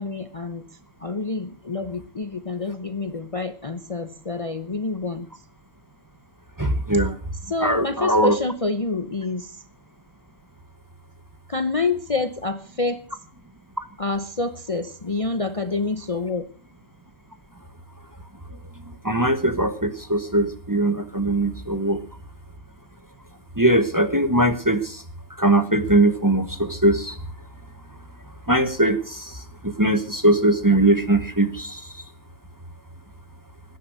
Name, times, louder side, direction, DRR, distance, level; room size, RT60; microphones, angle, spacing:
voice 1, 0.0-5.3 7.5-9.6 11.5-13.0 14.0-16.5, left 3 dB, 30° left, 11 dB, 0.9 m, -27 dB
voice 2, 6.6-7.1 7.6-8.4 19.0-22.0 23.6-25.0 25.4-27.2 28.5-31.8, right 1 dB, 15° right, 9 dB, 1.2 m, -20 dB
19.5 x 10.5 x 6.4 m, 0.42 s
omnidirectional pair, 1.4 m